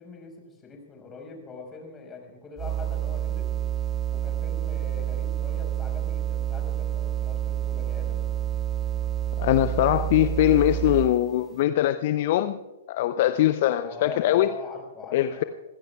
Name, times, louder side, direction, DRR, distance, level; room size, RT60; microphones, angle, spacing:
voice 1, 0.0-3.5 4.1-8.3 13.8-15.5, left 5 dB, 20° left, 2 dB, 5.0 m, -42 dB
sound 1, 2.6-11.3, right 11 dB, 20° right, 0.7 m, -28 dB
voice 2, 9.4-12.6 12.9-14.5 15.1-15.4, left 13 dB, 45° left, 12 dB, 0.6 m, -22 dB
26.0 x 16.0 x 2.4 m, 1.2 s
figure-of-eight pair, 110°, 0 cm